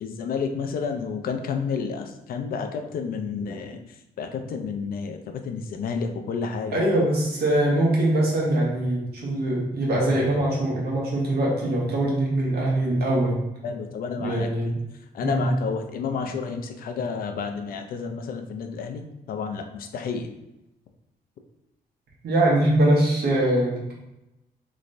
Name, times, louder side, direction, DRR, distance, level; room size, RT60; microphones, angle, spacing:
voice 1, 0.0-3.8 4.2-6.9 13.6-14.5 15.1-20.3, left 5 dB, 65° left, 5 dB, 0.4 m, -30 dB
voice 2, 6.7-13.4 14.2-14.8 15.2-15.5 22.2-23.9, right 1 dB, 80° right, -3 dB, 1.2 m, -22 dB
3.2 x 3.1 x 2.6 m, 0.94 s
cardioid pair, 140°, 16 cm